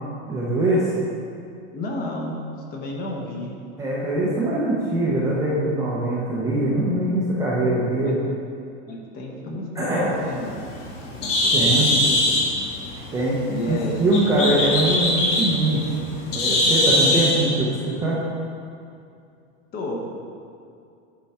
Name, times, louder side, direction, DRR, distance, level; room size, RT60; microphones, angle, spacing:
voice 1, 0.3-0.9 3.8-8.2 9.8-10.1 11.5-12.0 13.1-15.9 16.3-18.2, right 1 dB, 10° right, -7 dB, 0.6 m, -22 dB
voice 2, 1.7-2.4 2.7-3.5 8.0-8.1 8.9-10.6 11.2-12.6 13.5-14.0 19.7-20.1, left 1 dB, 25° left, 0 dB, 0.9 m, -32 dB
Bird, 10.2-17.4, left 1 dB, 85° left, 1.8 m, -22 dB
10.5 x 4.5 x 4.2 m, 2.5 s
supercardioid pair, 165°, 36 cm